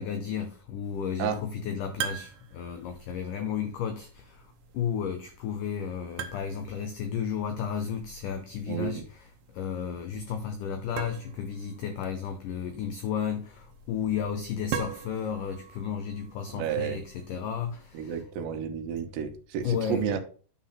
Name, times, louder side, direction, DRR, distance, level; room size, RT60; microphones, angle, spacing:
voice 1, 0.0-9.3 9.5-18.2 19.6-20.1, left 7 dB, 85° left, 1.8 m, -33 dB
sound 1, 0.8-18.0, right 8 dB, 70° right, 2.3 m, -43 dB
voice 2, 8.7-9.0 16.5-17.0 17.9-20.2, right 8 dB, 90° right, 3.4 m, -31 dB
9.7 x 4.1 x 5.7 m
omnidirectional pair, 4.9 m